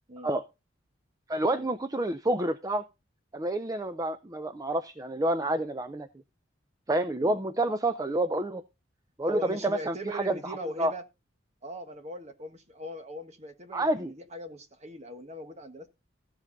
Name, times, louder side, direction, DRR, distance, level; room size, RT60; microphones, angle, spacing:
voice 1, 1.3-2.8 3.3-6.1 6.9-8.6 9.2-10.9 13.7-14.1, right 1 dB, 20° right, 0.5 m, -29 dB
voice 2, 9.2-11.0 11.6-15.9, equal, 35° right, 1.5 m, -40 dB
14.5 x 7.6 x 3.9 m
head